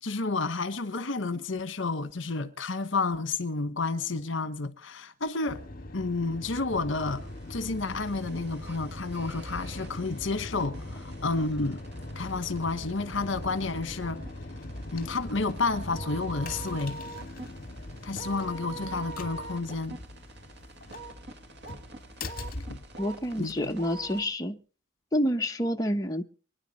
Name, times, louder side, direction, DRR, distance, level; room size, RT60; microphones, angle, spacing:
voice 1, 0.0-5.7 5.9-11.8 12.1-14.2 14.9-17.0 18.0-20.0 22.7-22.8 23.4-23.7, left 3 dB, 65° left, 1.2 m, -31 dB
sound 1, 5.5-23.5, left 1 dB, 45° left, 2.2 m, -41 dB
sound 2, 7.1-24.2, right 3 dB, 55° right, 2.0 m, -46 dB
voice 2, 23.0-24.6 25.1-26.2, equal, 20° left, 0.8 m, -28 dB
25.5 x 10.0 x 4.2 m
head